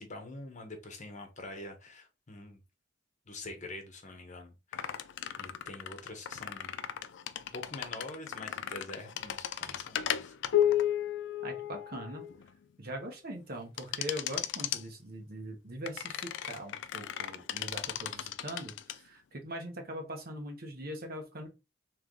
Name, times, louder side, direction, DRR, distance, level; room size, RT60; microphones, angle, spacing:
voice 1, 0.0-2.6 3.3-5.1 5.4-6.7 7.5-10.3, left 2 dB, 40° left, 1.0 m, -45 dB
sound 1, 4.7-12.5 13.8-14.8 15.9-19.0, left 11 dB, 65° left, 0.4 m, -34 dB
voice 2, 11.4-12.3 12.8-21.5, equal, 55° right, 1.2 m, -41 dB
3.3 x 3.2 x 3.7 m
head